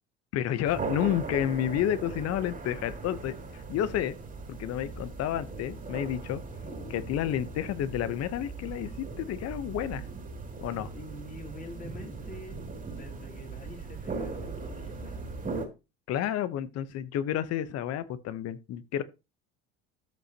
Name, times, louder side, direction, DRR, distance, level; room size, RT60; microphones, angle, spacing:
voice 1, 0.3-4.2 4.5-6.4 6.9-10.0 10.6-10.9 16.1-19.0, left 10 dB, 55° left, 1.0 m, -30 dB
sound 1, 0.6-15.7, right 4 dB, 25° right, 2.7 m, -39 dB
voice 2, 10.9-15.3, left 1 dB, 30° left, 3.0 m, -46 dB
13.5 x 5.2 x 2.9 m
supercardioid pair, 85°, 30 cm